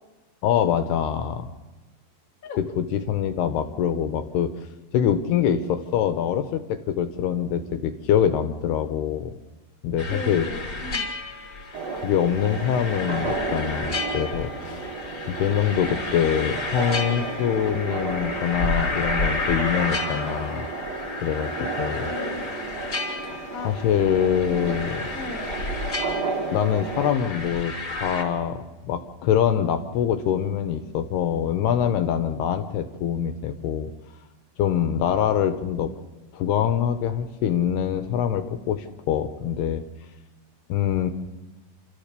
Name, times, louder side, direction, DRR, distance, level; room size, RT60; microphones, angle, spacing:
voice 1, 0.4-1.5 2.6-4.5 4.9-9.3 9.8-10.5 11.9-14.9 15.3-20.7 21.2-21.5 21.8-22.1 23.2-25.0 26.5-33.9 34.6-35.9 36.3-39.8 40.7-41.1, left 9 dB, 75° left, 9 dB, 2.6 m, -24 dB
sound 1, 10.0-28.2, left 3 dB, 25° left, 3.2 m, -32 dB
voice 2, 10.1-11.1 21.6-21.7 22.0-22.5 23.5-23.7 24.5-24.8 25.1-25.5, left 3 dB, 45° left, 2 dB, 1.0 m, -36 dB
sound 2, 11.7-27.1, right 4 dB, 60° right, 1.7 m, -33 dB
28.0 x 14.0 x 6.7 m, 1.2 s
omnidirectional pair, 5.2 m